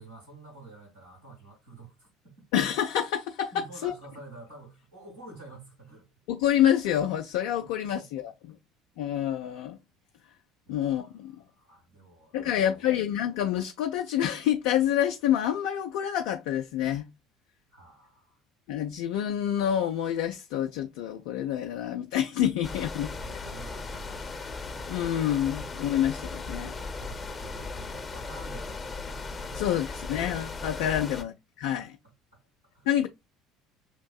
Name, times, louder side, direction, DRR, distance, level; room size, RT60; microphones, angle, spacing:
voice 1, 0.0-2.4 3.5-6.1 8.0-8.3 10.6-12.9 17.7-18.4 22.8-24.5 25.6-25.8 26.6-29.0 29.5-29.8 30.7-31.0 31.7-31.9 32.3-32.4 32.7-32.9, right 3 dB, 85° right, 2.6 m, -49 dB
voice 2, 2.5-3.9 6.3-8.3 9.0-9.8 10.7-11.3 12.3-17.1 18.7-23.1 24.9-26.7 29.6-31.9 32.9-33.1, left 10 dB, 60° left, 0.5 m, -27 dB
sound 1, 22.6-31.2, left 3 dB, 25° left, 0.7 m, -37 dB
6.5 x 2.6 x 2.3 m
figure-of-eight pair, 60°, 0 cm